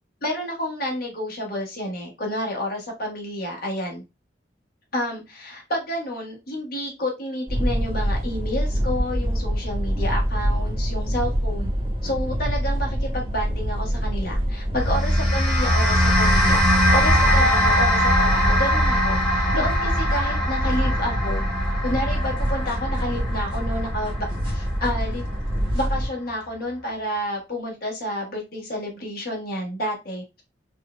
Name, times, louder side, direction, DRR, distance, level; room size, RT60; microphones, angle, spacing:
voice 1, 0.2-4.0 4.9-11.7 12.0-16.6 16.9-21.4 21.8-25.3 25.7-30.4, equal, 55° left, -1 dB, 1.2 m, -30 dB
sound 1, 7.5-26.1, equal, 30° right, 0.9 m, -25 dB
sound 2, 14.7-25.3, equal, 5° left, 1.3 m, -22 dB
4.2 x 2.4 x 2.2 m, 0.25 s
head